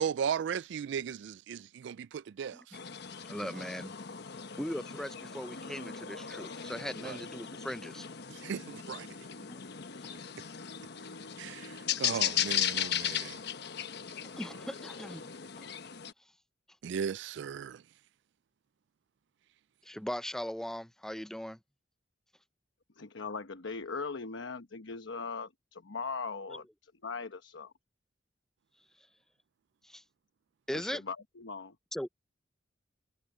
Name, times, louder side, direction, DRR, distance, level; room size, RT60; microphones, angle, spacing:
voice 1, 0.0-2.8 3.4-3.7 7.0-7.2 8.3-9.1 11.4-13.4 16.8-17.8, right 7 dB, 65° right, 0.3 m, -36 dB
sound 1, 2.7-16.1, left 9 dB, 60° left, 1.1 m, -37 dB
voice 2, 3.3-3.9 4.6-8.1 9.3-9.6 14.4-15.3 19.9-21.6 29.8-30.0 30.7-31.0 31.9-32.1, equal, 5° left, 0.5 m, -39 dB
voice 3, 23.0-27.7 30.7-31.8, left 4 dB, 85° left, 1.0 m, -40 dB
head